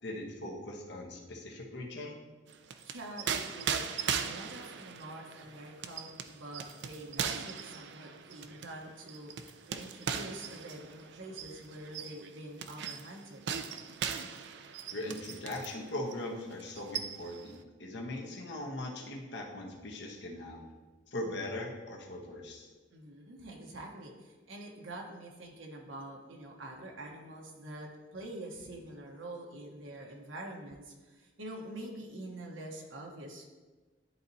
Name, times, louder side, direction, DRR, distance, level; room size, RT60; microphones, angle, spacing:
voice 1, 0.0-2.2 14.9-20.7 21.1-22.7, left 1 dB, 65° left, 0 dB, 1.1 m, -40 dB
sound 1, 2.5-15.8 16.1-16.3 16.6-17.4, right 7 dB, 60° right, 0.4 m, -39 dB
voice 2, 2.8-13.4 22.9-33.4, right 1 dB, 90° right, 0 dB, 1.1 m, -46 dB
11.0 x 4.1 x 2.7 m, 1.3 s
head